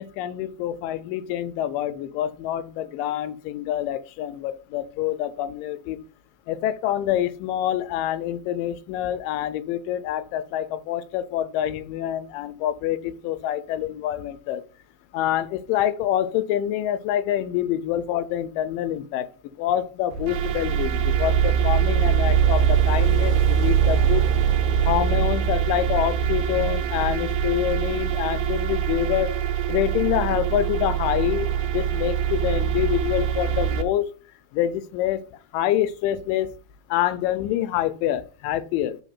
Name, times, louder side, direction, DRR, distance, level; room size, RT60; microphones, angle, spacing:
voice 1, 0.0-6.0 6.5-14.6 15.1-19.3 19.6-24.3 24.9-29.3 29.7-31.5 31.7-34.1 34.5-35.2 35.5-36.5 36.9-39.0, left 12 dB, 85° left, 2.2 m, -26 dB
sound 1, 20.1-33.8, right 9 dB, 80° right, 2.3 m, -22 dB
5.0 x 3.8 x 5.5 m
omnidirectional pair, 3.9 m